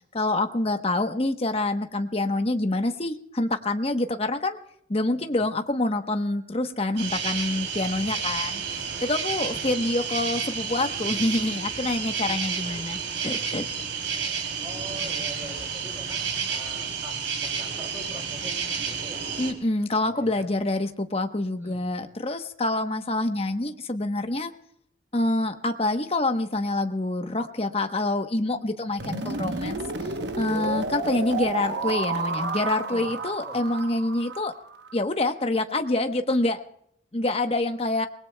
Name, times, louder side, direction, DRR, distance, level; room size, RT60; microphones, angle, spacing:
voice 1, 0.0-4.6 4.9-13.6 19.4-24.5 25.1-29.8 30.4-34.5 34.9-36.6 37.1-38.1, left 2 dB, 30° left, 7 dB, 1.0 m, -26 dB
sound 1, 7.0-19.5, right 6 dB, 85° right, 3.2 m, -31 dB
voice 2, 14.6-16.2 16.5-19.6 20.0-20.4 21.5-21.8 32.9-33.1 33.5-33.6, right 1 dB, 15° right, 1 dB, 5.4 m, -43 dB
sound 2, 29.0-34.9, right 3 dB, 65° right, 1.0 m, -31 dB
27.0 x 20.0 x 2.3 m, 0.72 s
head